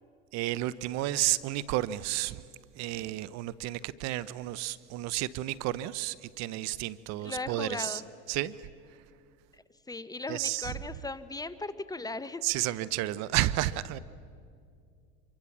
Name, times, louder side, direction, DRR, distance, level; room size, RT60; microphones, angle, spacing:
voice 1, 0.3-2.4 2.8-8.0 8.3-8.6 10.3-10.7 12.4-14.0, right 15 dB, 55° right, 18 dB, 0.7 m, -31 dB
voice 2, 7.2-8.1 9.9-12.4, left 3 dB, 10° left, 13 dB, 0.8 m, -37 dB
26.5 x 23.5 x 7.3 m, 2.3 s
supercardioid pair, 105°, 32 cm